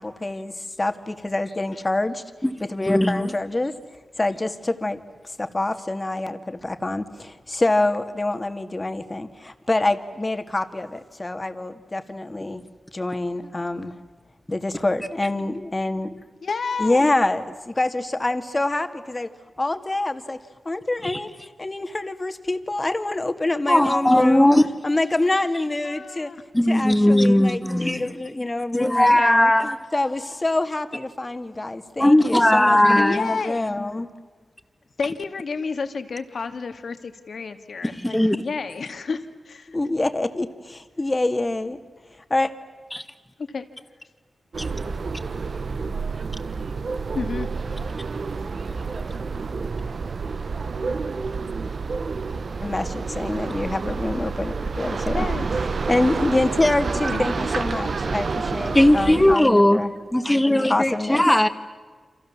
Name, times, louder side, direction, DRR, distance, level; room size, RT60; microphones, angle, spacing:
voice 1, 0.0-2.2 2.7-3.8 4.2-12.7 12.9-14.0 14.5-16.1 16.8-19.3 19.6-20.4 20.7-24.6 24.8-26.3 26.7-29.5 29.9-32.8 33.1-34.1 39.7-41.8 42.3-42.5 52.6-55.3 55.9-59.9 60.7-61.2, left 2 dB, 25° left, 2.1 m, -26 dB
voice 2, 2.8-3.3 21.0-21.2 23.7-24.7 26.5-28.1 28.7-29.8 32.0-33.2 37.8-38.5 42.9-43.0 44.6-44.7 56.6-56.7 58.7-59.8 60.1-61.5, left 1 dB, 10° left, 2.1 m, -18 dB
voice 3, 16.4-17.1 25.8-26.4 33.0-33.6 35.0-39.8 43.5-43.6 47.1-47.5 55.0-55.5 57.1-57.2, left 4 dB, 70° left, 2.3 m, -30 dB
sound 1, 44.5-59.4, right 4 dB, 60° right, 1.1 m, -29 dB
29.5 x 27.0 x 7.4 m
cardioid pair, 75°, 0 cm